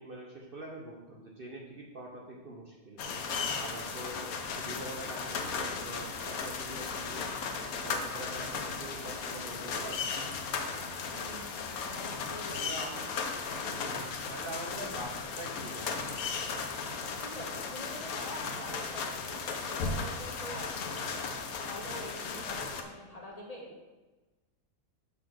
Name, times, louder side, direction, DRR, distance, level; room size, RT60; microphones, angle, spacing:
voice 1, 0.0-3.0 3.6-7.2 7.8-10.0 12.5-13.1 13.7-15.9 16.2-16.3, right 1 dB, 45° right, -2 dB, 1.0 m, -44 dB
sound 1, 3.0-22.8, left 5 dB, 80° left, 1.2 m, -36 dB
voice 2, 11.1-12.9 17.2-23.7, equal, 25° left, -3 dB, 1.5 m, -46 dB
6.9 x 4.0 x 6.4 m, 1.2 s
omnidirectional pair, 1.5 m